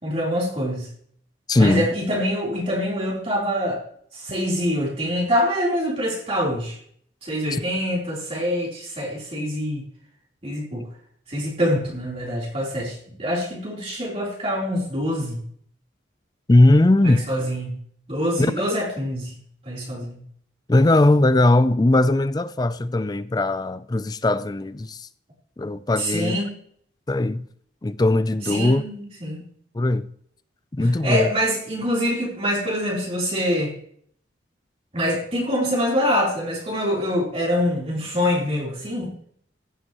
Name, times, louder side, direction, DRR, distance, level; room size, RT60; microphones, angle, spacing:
voice 1, 0.0-0.9 1.6-3.8 4.1-6.8 7.2-9.8 10.4-10.9 11.3-15.4 17.0-17.8 18.1-19.3 19.6-20.2 26.0-26.6 28.5-29.5 31.0-33.7 34.9-39.1, equal, 30° right, 3.6 m, -25 dB
voice 2, 1.5-1.9 16.5-17.3 18.5-18.7 20.7-25.1 25.6-26.4 27.1-27.5 27.8-28.8 29.7-30.1 30.7-31.3, left 2 dB, 20° left, 0.4 m, -19 dB
15.5 x 10.0 x 3.0 m
head